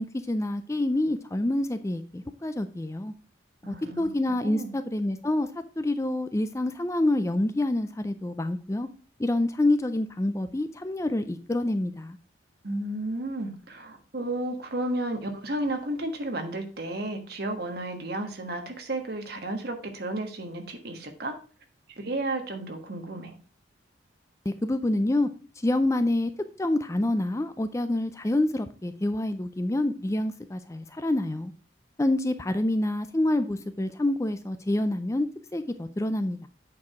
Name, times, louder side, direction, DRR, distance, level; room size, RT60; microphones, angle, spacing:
voice 1, 0.0-3.1 3.7-5.5 5.8-8.9 9.2-12.2 24.5-25.3 25.6-26.3 26.6-31.5 32.0-36.5, left 1 dB, 15° left, 10 dB, 0.4 m, -27 dB
voice 2, 3.6-4.1 4.4-4.7 12.6-21.4 22.0-23.3, right 1 dB, 55° right, 5 dB, 1.4 m, -32 dB
8.4 x 4.7 x 4.8 m, 0.37 s
head